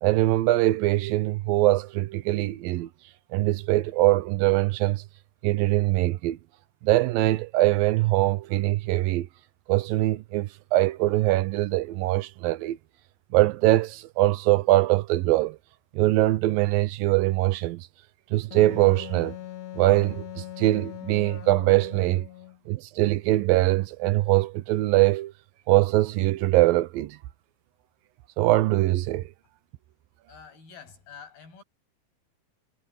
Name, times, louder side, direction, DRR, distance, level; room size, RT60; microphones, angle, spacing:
voice 1, 0.0-2.9 3.3-5.0 5.4-6.4 6.8-9.3 9.7-12.8 13.3-15.6 15.9-17.9 18.3-19.4 19.8-22.3 22.7-25.3 25.7-27.2 28.4-29.3, right 17 dB, 80° right, 2.4 m, -22 dB
Wind instrument woodwind instrument, 18.5-22.6, left 14 dB, 65° left, 1.9 m, -40 dB
voice 2, 30.3-31.6, left 7 dB, 85° left, 9.6 m, -47 dB
omnidirectional pair, 4.2 m